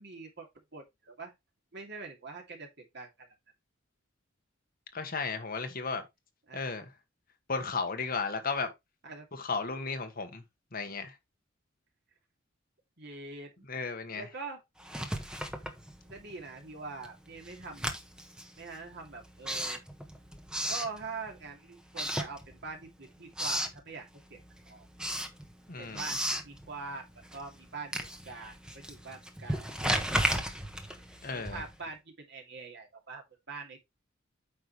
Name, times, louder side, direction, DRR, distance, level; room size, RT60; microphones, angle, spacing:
voice 1, 0.0-1.3 1.7-3.3 6.5-6.6 9.0-9.3 13.0-13.5 14.2-14.6 16.1-17.9 18.6-19.8 20.7-25.2 25.8-26.2 26.4-27.1 27.3-28.0 28.2-30.4 31.3-33.9, right 4 dB, 60° right, 2.6 m, -44 dB
voice 2, 4.9-6.0 6.5-6.9 7.5-8.7 9.3-10.4 10.7-11.1 13.7-14.2 25.7-26.0 31.2-31.6, left 4 dB, 45° left, 1.5 m, -34 dB
Writing, 14.8-16.4 16.7-21.5 21.9-22.9 23.1-23.8 24.2-31.9, equal, 5° right, 1.2 m, -35 dB
8.9 x 5.6 x 3.2 m
head